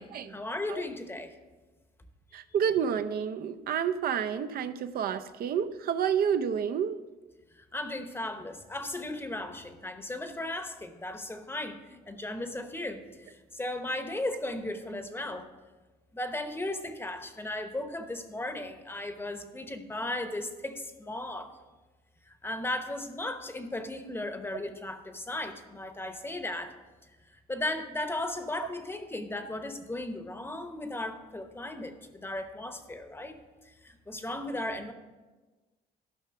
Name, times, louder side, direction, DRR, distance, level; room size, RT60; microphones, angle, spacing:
voice 1, 0.3-1.3 7.7-15.5 16.1-21.5 22.3-26.7 27.5-31.9 32.2-33.4 33.8-34.9, left 1 dB, 15° left, 8 dB, 0.8 m, -36 dB
voice 2, 2.3-7.0, right 8 dB, 60° right, 10 dB, 0.5 m, -29 dB
12.0 x 5.8 x 5.7 m, 1.2 s
cardioid pair, 125°, 17 cm